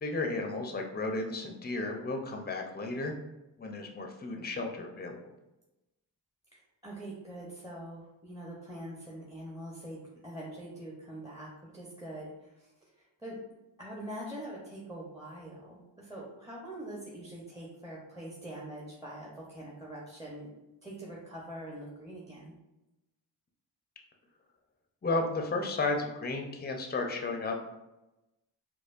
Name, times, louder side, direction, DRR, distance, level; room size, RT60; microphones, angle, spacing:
voice 1, 0.0-3.1 3.6-5.2 25.0-27.8, left 3 dB, 20° left, 3 dB, 0.6 m, -33 dB
voice 2, 6.5-13.4 13.8-20.5 20.8-22.5, right 1 dB, 10° right, -5 dB, 0.9 m, -44 dB
4.2 x 2.3 x 2.5 m, 0.97 s
cardioid pair, 50°, 45 cm